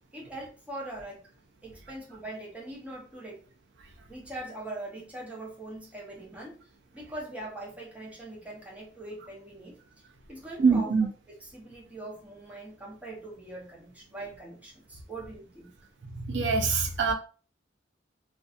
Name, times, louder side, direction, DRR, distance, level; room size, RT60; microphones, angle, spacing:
voice 1, 0.1-1.2 1.6-3.4 4.1-6.6 6.9-9.7 10.3-10.9 11.4-15.7, right 2 dB, 10° right, 0.7 m, -41 dB
voice 2, 10.6-11.1 16.1-17.1, right 4 dB, 65° right, 0.4 m, -24 dB
2.5 x 2.2 x 2.4 m
head